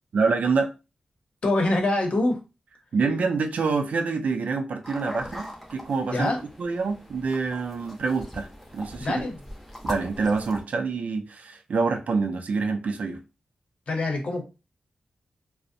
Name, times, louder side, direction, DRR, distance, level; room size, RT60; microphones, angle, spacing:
voice 1, 0.1-0.7 2.9-6.3 6.6-8.5 8.7-9.3 9.8-13.2, right 4 dB, 70° right, 0.4 m, -26 dB
voice 2, 1.4-2.4 6.1-6.4 9.0-9.4 13.9-14.4, left 2 dB, 55° left, 0.7 m, -24 dB
sound 1, 4.8-10.6, equal, 5° left, 0.6 m, -40 dB
2.5 x 2.0 x 2.6 m
wide cardioid pair, 110°, 3 cm